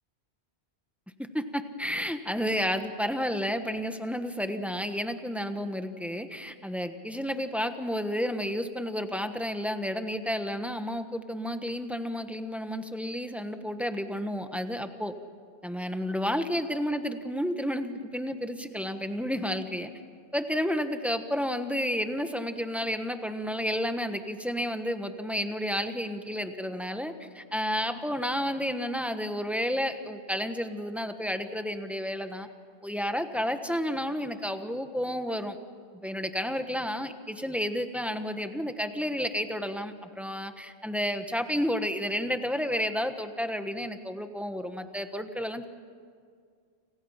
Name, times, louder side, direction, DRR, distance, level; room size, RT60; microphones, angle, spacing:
voice 1, 1.3-15.1 15.6-19.9 20.3-32.5 32.8-35.6 36.0-45.7, equal, ahead, 7 dB, 1.2 m, -31 dB
29.5 x 27.5 x 5.7 m, 2.1 s
omnidirectional pair, 1.1 m